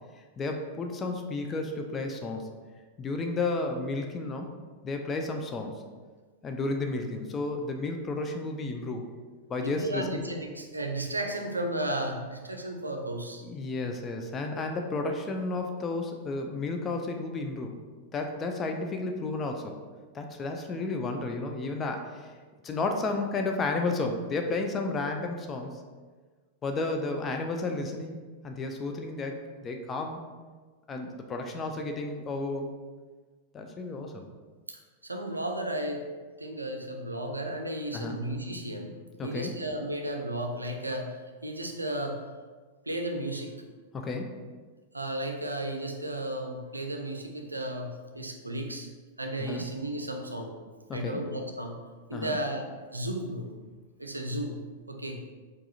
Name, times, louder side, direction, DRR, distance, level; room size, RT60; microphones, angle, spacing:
voice 1, 0.4-2.5 3.0-4.5 4.8-5.8 6.4-9.1 9.5-10.3 13.4-17.8 18.1-19.8 20.1-22.3 22.6-25.8 26.6-28.2 28.4-30.2 30.9-32.7 33.5-34.3 37.9-38.2 39.2-39.5 43.9-44.3 49.4-49.6 50.9-51.2 52.1-52.4, left 3 dB, 25° left, 4 dB, 0.4 m, -32 dB
voice 2, 9.6-13.4 34.7-36.0 36.4-38.9 39.2-41.2 41.4-42.2 42.9-43.5 44.9-48.9 49.2-50.5 50.9-51.8 52.1-52.7 52.9-53.5 54.0-54.6 54.9-55.2, right 1 dB, 85° right, 4 dB, 0.4 m, -34 dB
4.6 x 2.4 x 2.8 m, 1.4 s
figure-of-eight pair, 95°, 0 cm